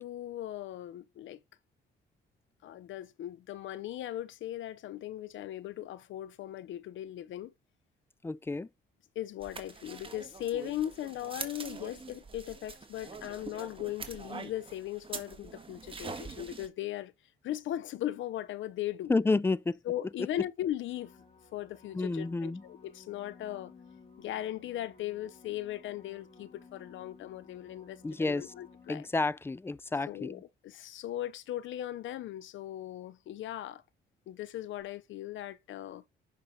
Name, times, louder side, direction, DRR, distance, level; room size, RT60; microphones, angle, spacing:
voice 1, 0.0-1.4 2.6-7.5 9.2-17.1 17.4-19.1 19.9-21.1 21.5-23.7 24.2-29.1 30.1-33.8 34.3-36.0, left 13 dB, 75° left, 0.7 m, -38 dB
voice 2, 8.2-8.7 19.1-19.8 21.9-22.6 28.0-28.5 28.9-30.4, left 3 dB, 10° left, 0.4 m, -30 dB
sound 1, 9.4-16.7, right 4 dB, 25° right, 1.7 m, -44 dB
sound 2, 20.8-29.5 34.8-34.9, left 4 dB, 30° left, 2.2 m, -56 dB
10.5 x 5.5 x 4.1 m
cardioid pair, 90°, 20 cm